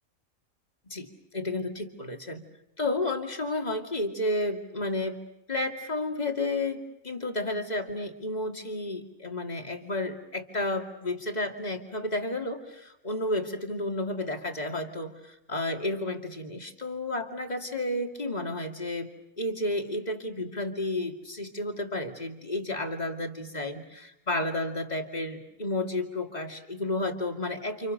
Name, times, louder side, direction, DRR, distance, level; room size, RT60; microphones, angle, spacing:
voice 1, 0.9-2.4 2.8-5.2 5.5-19.1 19.4-27.9, left 2 dB, 30° left, 4 dB, 2.6 m, -32 dB
30.0 x 28.5 x 6.6 m, 0.87 s
omnidirectional pair, 1.4 m